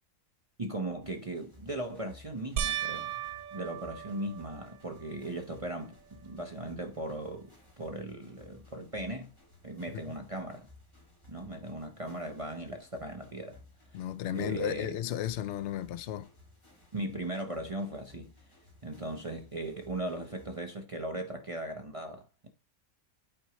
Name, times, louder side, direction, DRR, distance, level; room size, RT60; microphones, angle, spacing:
voice 1, 0.6-3.2 3.5-9.3 9.6-10.6 11.3-13.6 14.3-15.0 16.9-18.3 18.8-22.5, right 1 dB, 30° right, 0.7 m, -38 dB
sound 1, 1.0-20.6, left 2 dB, 20° left, 2.5 m, -58 dB
sound 2, 2.6-5.2 5.8-6.3 6.7-6.8 10.0-10.1, right 9 dB, 85° right, 1.2 m, -37 dB
voice 2, 13.9-16.3, left 11 dB, 65° left, 0.7 m, -34 dB
8.6 x 4.5 x 3.0 m
omnidirectional pair, 1.6 m